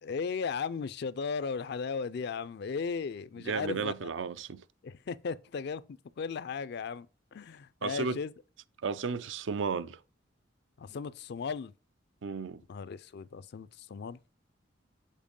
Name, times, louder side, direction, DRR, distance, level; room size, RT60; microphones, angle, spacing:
voice 1, 0.0-4.1 4.8-5.8 6.2-7.1 7.3-8.3 10.8-11.7 12.7-14.2, left 5 dB, 60° left, 0.4 m, -36 dB
voice 2, 3.4-4.6 7.8-8.2 8.8-10.0 12.2-12.6, right 5 dB, 75° right, 0.5 m, -33 dB
7.4 x 4.5 x 5.2 m
head